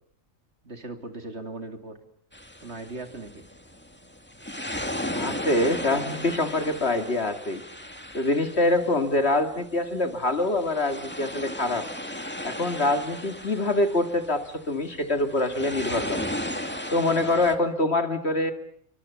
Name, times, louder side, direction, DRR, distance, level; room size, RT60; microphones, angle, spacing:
voice 1, 0.6-1.9 2.6-3.4, right 3 dB, 55° right, 6 dB, 3.2 m, -38 dB
sound 1, 2.3-17.6, left 1 dB, 10° left, 2.1 m, -36 dB
voice 2, 5.1-7.6 8.1-11.9 12.4-16.3 16.9-18.5, left 2 dB, 55° left, 7 dB, 2.5 m, -25 dB
29.0 x 24.0 x 7.0 m, 0.65 s
omnidirectional pair, 1.3 m